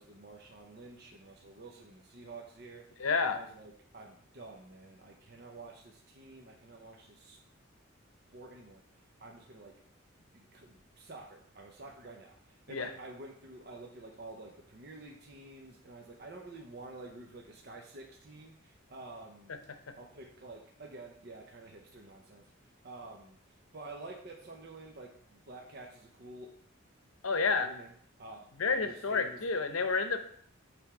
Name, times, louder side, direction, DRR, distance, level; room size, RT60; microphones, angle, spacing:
voice 1, 0.0-7.4 8.3-8.8 9.2-9.8 10.2-19.5 20.0-22.4 22.8-23.4 23.7-26.5 27.6-27.9 28.2-28.5 28.8-29.4, right 2 dB, 50° right, 1 dB, 0.7 m, -49 dB
voice 2, 3.0-3.4 12.7-12.9 27.2-27.7 28.6-30.2, left 4 dB, 90° left, 8 dB, 0.8 m, -29 dB
8.9 x 3.4 x 4.8 m, 0.63 s
head